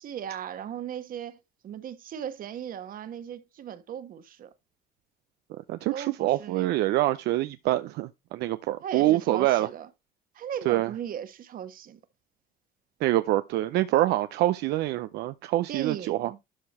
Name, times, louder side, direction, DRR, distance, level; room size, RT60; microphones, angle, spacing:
voice 1, 0.0-4.5 5.9-6.9 8.8-9.9 10.3-12.0 15.7-16.4, right 9 dB, 55° right, 1.4 m, -37 dB
voice 2, 5.7-9.7 10.7-10.9 13.0-16.3, right 15 dB, 80° right, 0.6 m, -25 dB
12.0 x 4.7 x 4.3 m
cardioid pair, 110°, 17 cm